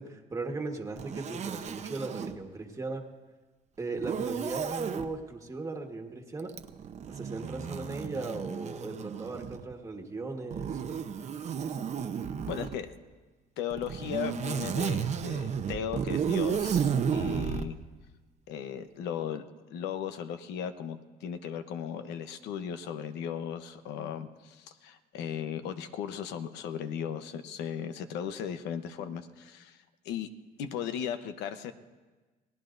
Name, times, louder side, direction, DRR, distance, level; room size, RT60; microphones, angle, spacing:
voice 1, 0.0-3.0 3.8-6.5 7.1-10.8, right 3 dB, 20° right, 3 dB, 1.5 m, -37 dB
Zipper (clothing), 1.0-2.4 4.0-5.1 6.5-9.7 10.5-12.8 13.7-17.7, right 7 dB, 45° right, 0.8 m, -33 dB
voice 2, 12.5-13.0 13.6-17.8 18.5-19.4 19.7-29.8 30.0-30.3 30.6-31.7, left 8 dB, 85° left, 9 dB, 0.9 m, -36 dB
29.0 x 18.5 x 2.6 m, 1.3 s
cardioid pair, 110°, 17 cm